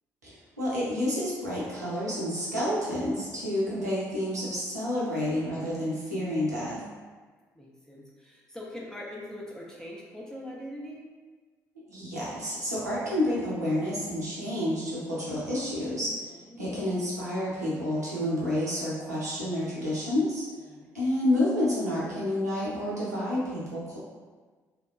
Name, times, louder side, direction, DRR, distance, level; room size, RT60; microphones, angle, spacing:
voice 1, 0.2-6.8 11.9-16.2 16.6-20.5 20.9-24.0, left 1 dB, 85° right, -8 dB, 0.6 m, -29 dB
voice 2, 7.5-11.1 16.3-16.7 20.7-21.0, left 1 dB, 5° left, -4 dB, 0.5 m, -43 dB
2.9 x 2.0 x 2.4 m, 1.4 s
figure-of-eight pair, 45°, 9 cm